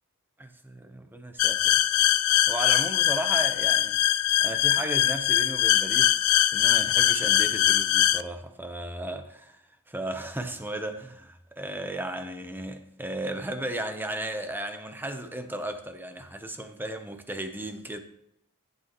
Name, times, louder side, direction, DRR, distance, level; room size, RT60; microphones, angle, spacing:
voice 1, 0.4-1.8 2.5-4.0 4.4-9.6 9.9-18.0, right 1 dB, 10° right, 0.8 m, -35 dB
sound 1, 1.4-8.2, left 14 dB, 75° left, 0.3 m, -22 dB
14.0 x 8.2 x 3.0 m
head